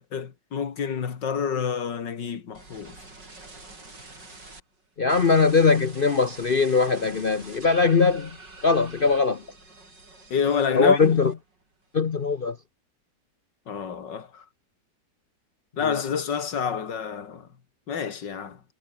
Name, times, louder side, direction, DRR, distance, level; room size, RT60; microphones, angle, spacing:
voice 1, 0.0-3.0 10.3-11.2 13.7-14.4 15.8-17.5 17.9-18.6, left 7 dB, 75° left, 2.6 m, -28 dB
sound 1, 2.5-4.6 5.1-11.6 11.9-12.5, right 2 dB, 70° right, 6.9 m, -46 dB
voice 2, 5.0-8.3 8.6-9.4 10.8-11.3 11.9-12.6, left 4 dB, 45° left, 0.7 m, -20 dB
omnidirectional pair, 2.0 m